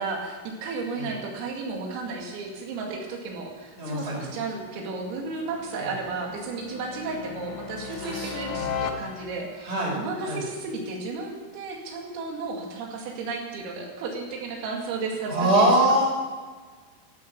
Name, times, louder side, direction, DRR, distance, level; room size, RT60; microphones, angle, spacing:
voice 1, 0.0-15.6, right 4 dB, 85° right, 0 dB, 4.9 m, -33 dB
sound 1, 3.3-9.6, left 6 dB, 70° left, 2.9 m, -38 dB
voice 2, 3.8-4.2 5.8-5.9 8.0-8.7 9.6-10.0 10.2-10.4 15.3-16.0, right 1 dB, 20° right, -3 dB, 5.7 m, -23 dB
14.0 x 14.0 x 7.0 m, 1.4 s
omnidirectional pair, 5.9 m